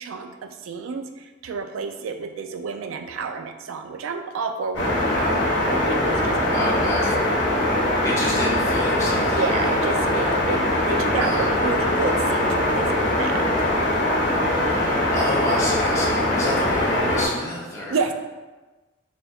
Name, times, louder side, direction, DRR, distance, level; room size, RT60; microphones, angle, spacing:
voice 1, 0.0-7.0 9.3-13.5 17.8-18.1, right 5 dB, 80° right, 7 dB, 0.3 m, -30 dB
sound 1, 4.7-17.3, left 1 dB, 55° left, 0.9 m, -22 dB
voice 2, 6.5-7.3 8.0-9.7 11.2-11.6 14.4-18.0, left 1 dB, 15° left, -6 dB, 0.6 m, -29 dB
4.0 x 3.3 x 2.3 m, 1.2 s
head